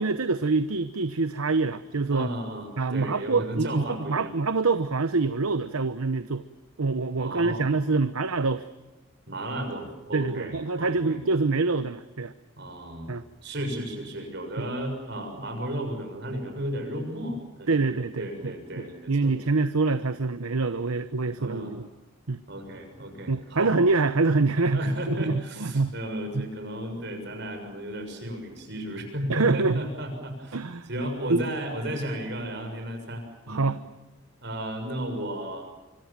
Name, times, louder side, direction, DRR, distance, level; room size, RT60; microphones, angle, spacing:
voice 1, 0.0-2.3 2.8-6.4 6.8-8.7 10.1-12.3 13.1-13.2 14.6-14.7 17.7-21.9 22.3-22.4 23.3-26.0 26.3-26.5 29.3-29.8 30.5-30.9 31.3-31.4 33.5-33.8, right 3 dB, 90° right, 11 dB, 0.9 m, -25 dB
voice 2, 2.1-4.3 7.2-7.7 9.3-11.2 12.6-13.1 13.4-19.3 21.4-21.7 22.5-23.8 24.6-30.6 30.9-33.7 34.4-35.7, right 1 dB, 55° right, 5 dB, 6.7 m, -34 dB
25.5 x 24.5 x 7.4 m, 1.1 s
head